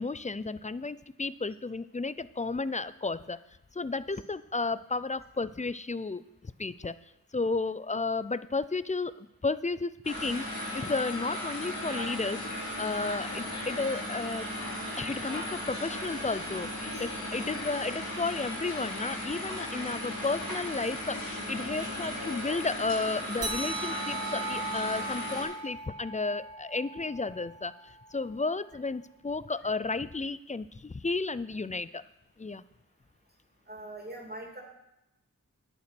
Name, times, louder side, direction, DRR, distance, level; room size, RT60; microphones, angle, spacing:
voice 1, 0.0-3.4 3.7-6.9 7.3-10.5 10.7-12.4 12.8-14.5 15.0-32.0 32.4-32.6, left 3 dB, 20° left, 16 dB, 0.4 m, -33 dB
sound 1, 10.0-25.4, left 1 dB, 90° left, 4.1 m, -36 dB
sound 2, 23.4-28.3, right 2 dB, 45° right, 2.0 m, -39 dB
voice 2, 33.7-34.6, right 2 dB, 30° right, -1 dB, 2.8 m, -42 dB
11.0 x 8.7 x 6.0 m, 0.89 s
wide cardioid pair, 50°, 33 cm